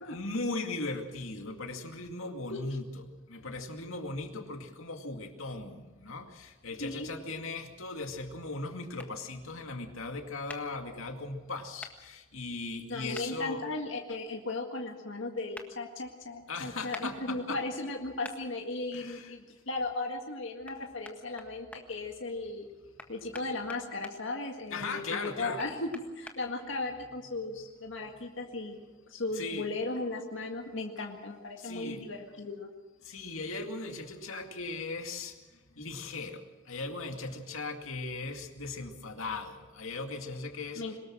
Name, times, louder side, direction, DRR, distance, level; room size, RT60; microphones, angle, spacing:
voice 1, 0.1-3.0 3.3-13.6 16.5-17.6 18.9-19.3 24.7-25.6 29.4-29.7 31.6-32.0 33.0-35.4 35.8-40.8, left 3 dB, 85° left, 4 dB, 2.3 m, -38 dB
sound 1, 9.0-9.1 10.5-10.6 11.8-11.9 13.1-13.3 15.5-15.7 16.9-17.1 18.2-18.4 20.7-20.8 21.0-21.8 23.0-24.2 25.2-26.4, left 2 dB, 5° left, 1.6 m, -44 dB
voice 2, 12.9-22.7 23.1-25.9 26.2-28.8 29.1-32.7 40.8-41.0, left 2 dB, 65° left, 1 dB, 1.9 m, -36 dB
22.5 x 20.0 x 6.2 m, 1.2 s
head